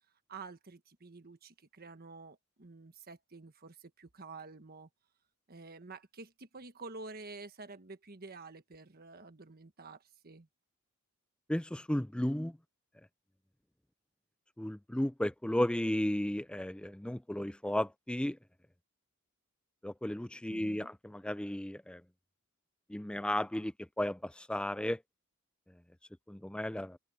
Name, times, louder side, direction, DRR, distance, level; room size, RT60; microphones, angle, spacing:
voice 1, 0.3-4.9 5.5-10.5 20.5-20.9, right 3 dB, 45° right, 1.4 m, -49 dB
voice 2, 11.5-12.6 14.6-18.4 19.8-22.0 22.9-25.0 26.3-27.0, left 1 dB, 5° left, 0.4 m, -34 dB
open air
head